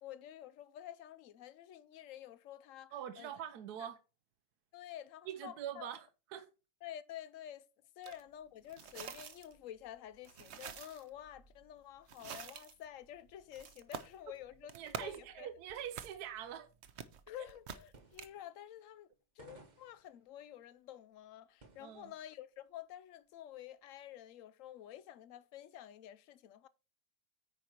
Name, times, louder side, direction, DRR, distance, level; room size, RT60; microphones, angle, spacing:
voice 1, 0.0-3.3 4.7-5.9 6.8-7.6 8.0-15.5 17.3-19.1 19.4-26.7, left 11 dB, 65° left, 0.8 m, -50 dB
voice 2, 2.9-4.0 5.3-6.5 8.1-8.2 14.7-16.7 17.4-17.5 21.8-22.1, right 10 dB, 70° right, 1.2 m, -44 dB
sound 1, 8.0-8.2 8.6-18.3, right 7 dB, 55° right, 0.8 m, -49 dB
sound 2, 17.6-17.7 17.9-19.1 19.4-22.3 22.6-22.7 23.4-24.3, right 3 dB, 30° right, 1.0 m, -62 dB
9.4 x 5.0 x 4.5 m
omnidirectional pair, 1.8 m